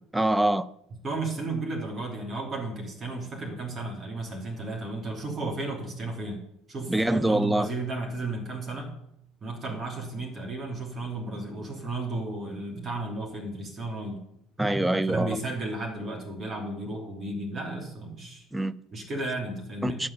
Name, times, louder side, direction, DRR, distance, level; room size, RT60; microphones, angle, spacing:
voice 1, 0.1-0.7 6.9-7.7 14.6-15.4 18.5-18.7 19.8-20.1, right 1 dB, 10° right, 0.5 m, -24 dB
voice 2, 1.0-6.4 6.7-8.9 9.4-14.2 15.1-18.4 18.9-20.0, right 2 dB, 30° right, 3.1 m, -33 dB
11.0 x 7.6 x 7.2 m
figure-of-eight pair, 60°, 0 cm